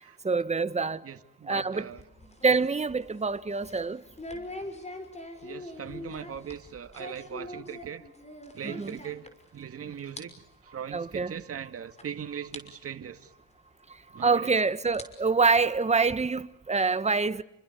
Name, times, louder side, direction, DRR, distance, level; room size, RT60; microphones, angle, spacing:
voice 1, 0.2-1.0 1.5-1.9 2.4-4.0 8.6-9.0 10.9-11.3 14.2-17.4, right 4 dB, 20° right, 1.4 m, -26 dB
voice 2, 1.0-2.0 5.4-8.0 8.5-13.3 14.1-14.5, right 8 dB, 50° right, 2.2 m, -40 dB
sound 1, 1.7-9.7 9.9-10.2 10.5-10.7 11.4-11.5 12.0-12.1 12.5-12.6 14.0-14.1 14.8-16.2, left 1 dB, 20° left, 6.0 m, -43 dB
30.0 x 25.0 x 6.8 m
cardioid pair, 90°, 30 cm